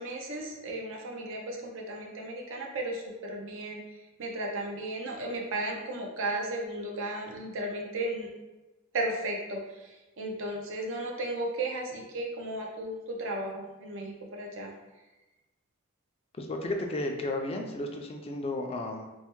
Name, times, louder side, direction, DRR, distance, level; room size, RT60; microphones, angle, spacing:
voice 1, 0.0-3.8 4.2-8.3 8.9-14.7, right 1 dB, 65° right, 0 dB, 0.5 m, -35 dB
voice 2, 16.4-19.1, left 2 dB, 30° left, 3 dB, 0.3 m, -33 dB
3.2 x 2.1 x 2.9 m, 1.1 s
head